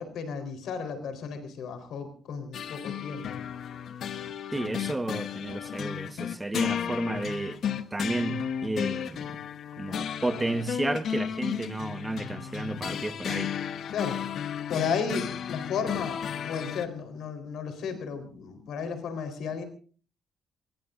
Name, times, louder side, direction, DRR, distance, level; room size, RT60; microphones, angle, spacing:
voice 1, 0.0-3.4 13.9-14.2 14.7-19.6, left 6 dB, 85° left, 4.0 m, -33 dB
sound 1, 2.5-16.9, left 8 dB, 65° left, 1.0 m, -34 dB
voice 2, 4.5-7.6 7.9-9.4 9.8-13.5, right 2 dB, 15° right, 1.3 m, -32 dB
24.0 x 21.5 x 2.6 m
cardioid pair, 125°, 0 cm